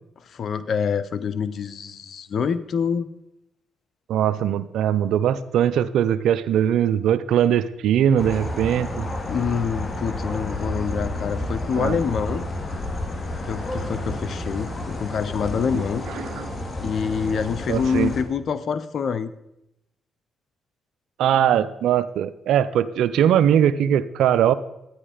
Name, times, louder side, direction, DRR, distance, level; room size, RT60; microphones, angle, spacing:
voice 1, 0.2-3.1 9.3-12.5 13.5-16.0 16.8-19.3, left 6 dB, 65° left, 15 dB, 0.8 m, -26 dB
voice 2, 4.1-9.1 11.8-12.0 16.4-16.5 17.7-18.1 21.2-24.5, right 10 dB, 80° right, 16 dB, 0.5 m, -20 dB
sound 1, 8.2-18.2, left 1 dB, 40° left, 2.3 m, -30 dB
13.0 x 9.8 x 5.0 m, 0.87 s
supercardioid pair, 50°, 0 cm